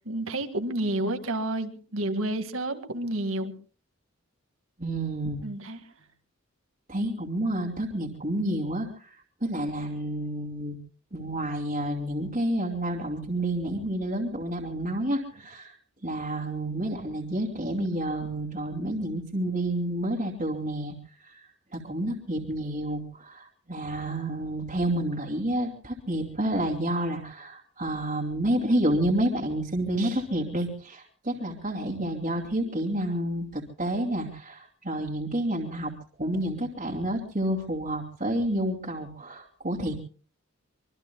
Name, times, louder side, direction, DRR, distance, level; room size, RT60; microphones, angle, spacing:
voice 1, 0.1-3.5 5.4-5.8, right 1 dB, 80° right, 8 dB, 2.0 m, -30 dB
voice 2, 4.8-5.4 6.9-9.2 9.4-10.8 11.1-15.8 16.0-20.9 21.2-21.5 21.7-35.9 36.2-39.9, right 1 dB, 40° right, -1 dB, 2.6 m, -29 dB
25.0 x 23.5 x 2.3 m, 0.41 s
head